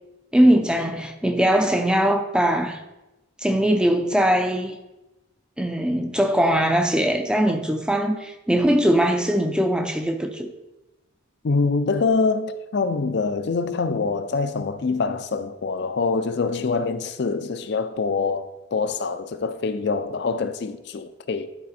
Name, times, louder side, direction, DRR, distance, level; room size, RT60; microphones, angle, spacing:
voice 1, 0.3-2.8 3.4-4.7 5.6-10.5, equal, 5° right, 0.4 m, -21 dB
voice 2, 11.4-21.5, left 4 dB, 55° left, 0.4 m, -25 dB
11.0 x 4.2 x 4.2 m
head